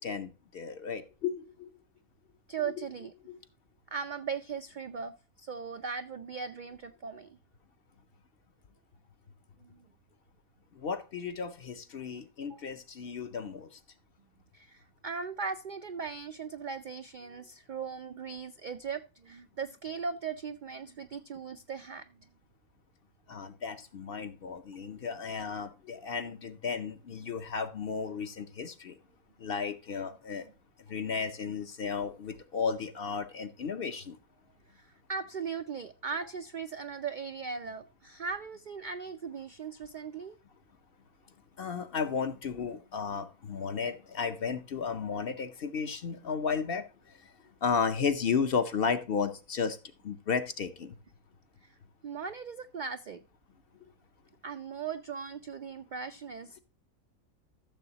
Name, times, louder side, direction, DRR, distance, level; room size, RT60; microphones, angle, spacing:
voice 1, 0.0-1.7 2.6-2.7 3.3-3.4 10.7-13.8 23.3-29.0 29.4-30.5 30.9-34.2 41.6-47.3 47.6-49.8 50.0-51.0, left 6 dB, 55° left, 9 dB, 0.8 m, -34 dB
voice 2, 2.5-3.1 3.9-5.1 5.4-7.4 9.6-9.9 12.5-12.6 14.5-22.3 34.7-40.4 51.6-51.8 52.0-53.2 54.4-56.6, right 6 dB, 80° right, 9 dB, 0.4 m, -38 dB
13.5 x 7.0 x 2.8 m, 0.33 s
omnidirectional pair, 1.4 m